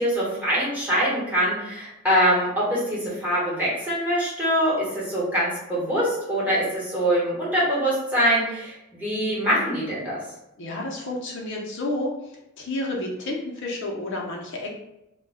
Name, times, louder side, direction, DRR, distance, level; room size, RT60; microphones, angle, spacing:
voice 1, 0.0-10.2, equal, 10° right, -9 dB, 1.1 m, -24 dB
voice 2, 10.6-12.1 12.6-14.7, left 2 dB, 60° left, -1 dB, 0.6 m, -30 dB
2.2 x 2.2 x 3.3 m, 0.88 s
head